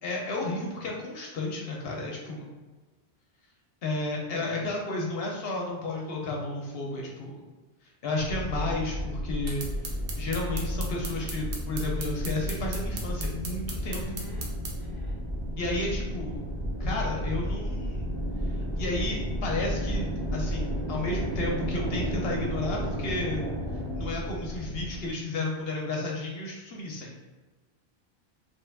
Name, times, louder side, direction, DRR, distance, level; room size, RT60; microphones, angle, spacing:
voice 1, 0.0-2.5 3.8-7.5 7.8-14.0 15.6-16.4 16.8-18.1 18.4-23.4 23.7-27.3, left 2 dB, 70° left, -1 dB, 0.8 m, -32 dB
voice 2, 4.0-4.7 14.0-15.2, left 2 dB, 20° left, -3 dB, 0.7 m, -49 dB
sound 1, 8.2-25.1, equal, 50° right, 1.1 m, -32 dB
sound 2, 9.5-14.8, right 3 dB, 65° right, 0.8 m, -38 dB
3.1 x 2.2 x 3.4 m, 1.2 s
omnidirectional pair, 1.1 m